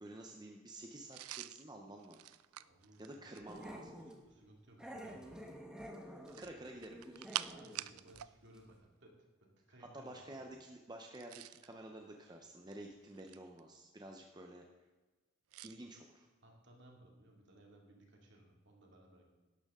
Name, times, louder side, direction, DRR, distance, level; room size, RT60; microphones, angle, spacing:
voice 1, 0.0-2.2 3.0-3.9 6.4-7.3 9.8-14.7 15.6-16.3, right 1 dB, 20° right, 2 dB, 0.7 m, -51 dB
sound 1, 1.1-3.8 6.2-8.3 8.6-8.8 11.0-11.7 12.5-13.6 15.5-15.8, right 14 dB, 90° right, 0.4 m, -46 dB
voice 2, 2.5-3.8 4.0-5.6 6.5-6.7 7.5-9.1 9.4-10.5 16.4-19.2, right 1 dB, 55° right, 0 dB, 2.5 m, -61 dB
Growling, 3.5-4.2 4.8-7.8 8.1-8.2 8.5-8.6, equal, 5° right, 1.1 m, -50 dB
12.0 x 12.0 x 3.7 m, 1.2 s
head